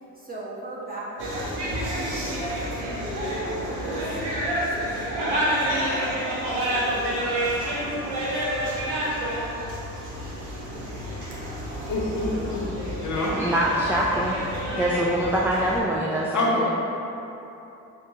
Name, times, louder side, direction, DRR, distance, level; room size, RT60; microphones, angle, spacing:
voice 1, 0.1-2.9 3.4-4.1 4.7-9.3 9.9-10.9 15.6-15.9, right 1 dB, 25° right, -7 dB, 1.4 m, -41 dB
sound 1, 1.2-15.8, right 1 dB, 90° right, 0.8 m, -29 dB
voice 2, 11.9-12.7 13.0-13.4 16.3-16.7, left 2 dB, 50° left, -4 dB, 0.9 m, -26 dB
voice 3, 13.3-14.3 14.8-16.7, right 1 dB, 5° right, -4 dB, 0.4 m, -24 dB
7.0 x 2.4 x 2.8 m, 2.9 s
hypercardioid pair, 45°, 38 cm